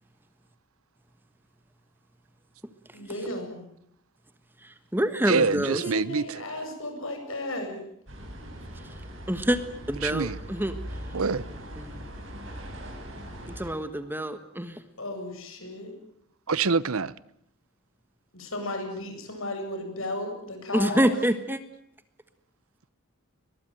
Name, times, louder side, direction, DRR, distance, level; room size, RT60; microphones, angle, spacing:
voice 1, 2.9-3.7 5.5-7.8 15.0-15.9 18.3-21.0, left 1 dB, 70° left, 7.8 m, -35 dB
voice 2, 4.6-5.8 9.3-9.6 9.9-10.7 11.8-11.9 13.4-14.8 20.7-21.6, equal, 10° right, 1.4 m, -26 dB
voice 3, 5.3-6.4 10.0-10.4 11.1-11.4 16.5-17.1, right 4 dB, 80° right, 0.9 m, -25 dB
sound 1, 8.1-13.7, equal, 60° right, 7.2 m, -40 dB
22.0 x 22.0 x 9.2 m
head